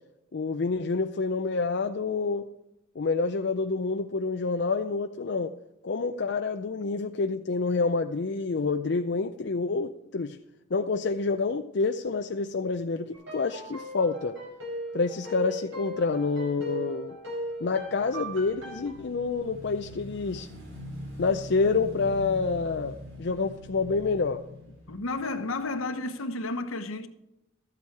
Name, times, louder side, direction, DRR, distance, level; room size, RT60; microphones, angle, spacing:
voice 1, 0.3-2.5 3.0-5.5 5.8-10.4 10.7-14.4 14.9-17.2 17.6-20.5 21.2-24.4, left 4 dB, 50° left, 0.5 m, -28 dB
sound 1, 13.1-18.9, right 1 dB, 65° right, 4.8 m, -38 dB
Motorcycle / Engine, 17.5-26.0, left 1 dB, 85° right, 4.9 m, -44 dB
voice 2, 24.9-27.1, left 2 dB, 75° left, 1.0 m, -32 dB
13.0 x 8.4 x 4.7 m
head